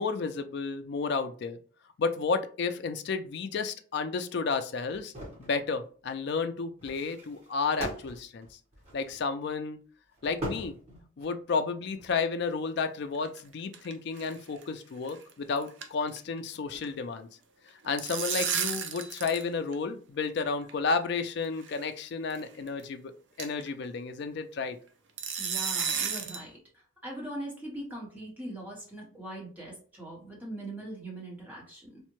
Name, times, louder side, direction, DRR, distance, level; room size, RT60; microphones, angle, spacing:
voice 1, 0.0-1.6 2.0-5.1 5.4-8.5 8.9-9.8 10.2-10.7 11.2-17.3 17.8-23.1 23.4-24.8, left 4 dB, 55° left, 9 dB, 0.3 m, -32 dB
sound 1, 4.9-5.5 6.8-9.3 10.2-11.4 11.9-12.1, right 1 dB, 35° right, 1.3 m, -40 dB
sound 2, 13.1-13.9 14.2-14.3 14.6-14.7 15.1-15.3 15.6-16.4 16.6-16.9 17.7-19.5 19.7-19.8 20.7-20.8 21.6-21.8 22.3-22.4 22.8-22.9 23.4-23.7 25.2-26.5, right 7 dB, 60° right, 0.5 m, -32 dB
voice 2, 25.4-26.6 27.0-32.0, right 1 dB, 10° right, -3 dB, 0.9 m, -41 dB
3.5 x 2.1 x 2.9 m, 0.41 s
head